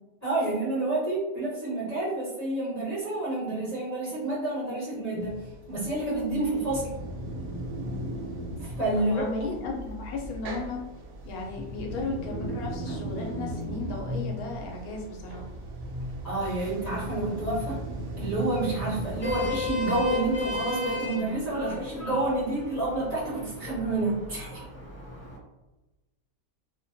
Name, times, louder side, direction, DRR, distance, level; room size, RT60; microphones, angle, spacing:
voice 1, 0.2-5.4 5.7-6.9 8.6-9.2 16.2-17.8 18.2-24.6, right 2 dB, 35° left, -10 dB, 0.7 m, -29 dB
sound 1, 5.2-20.6, right 1 dB, 80° right, 0.6 m, -37 dB
voice 2, 9.0-10.8 11.2-15.5, left 3 dB, 70° left, 0 dB, 0.9 m, -35 dB
Vehicle horn car horn honking, 19.0-25.4, left 3 dB, 10° left, 1.0 m, -35 dB
2.6 x 2.1 x 2.6 m, 1.1 s
omnidirectional pair, 1.8 m